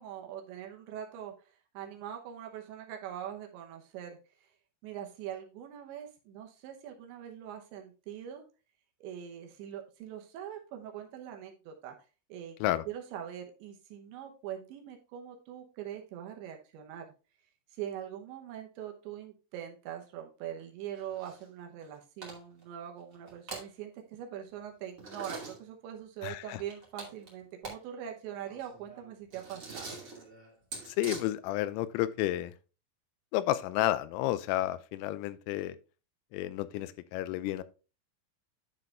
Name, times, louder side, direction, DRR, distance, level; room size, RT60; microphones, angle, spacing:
voice 1, 0.0-4.5 4.8-8.4 9.0-12.0 12.3-12.6 12.9-17.1 17.7-30.0, right 10 dB, 75° right, 3.0 m, -43 dB
sound 1, 20.9-21.4 21.8-21.9 22.2-22.6 23.1-23.7 25.0-25.6 26.6-27.8 28.1-28.2 28.4-31.2, right 3 dB, 35° right, 1.2 m, -44 dB
voice 2, 26.2-26.6 30.9-32.5 33.3-35.8 36.3-37.6, left 14 dB, 90° left, 3.2 m, -31 dB
11.0 x 4.7 x 3.3 m
omnidirectional pair, 5.8 m